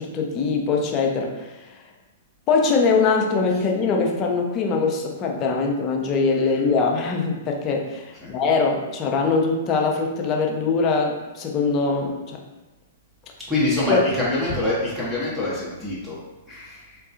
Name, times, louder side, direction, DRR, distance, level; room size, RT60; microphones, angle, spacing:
voice 1, 0.0-1.7 2.5-12.4 13.9-14.0, left 4 dB, 35° left, 1 dB, 0.5 m, -22 dB
voice 2, 13.5-16.2 16.5-17.0, left 2 dB, 5° right, -9 dB, 0.8 m, -25 dB
3.6 x 2.3 x 2.5 m, 1.1 s
hypercardioid pair, 115°, 0 cm